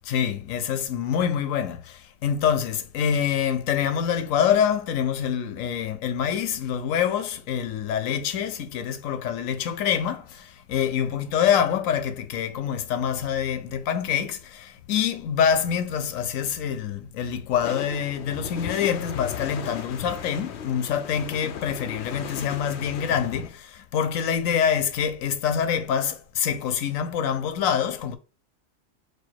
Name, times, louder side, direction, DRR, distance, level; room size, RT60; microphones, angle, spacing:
voice 1, 0.1-1.8 2.2-10.2 10.7-23.6 23.9-28.2, left 8 dB, 85° left, 1.1 m, -25 dB
sound 1, 17.6-23.5, left 8 dB, 65° left, 0.8 m, -36 dB
4.5 x 2.3 x 4.4 m
omnidirectional pair, 1.3 m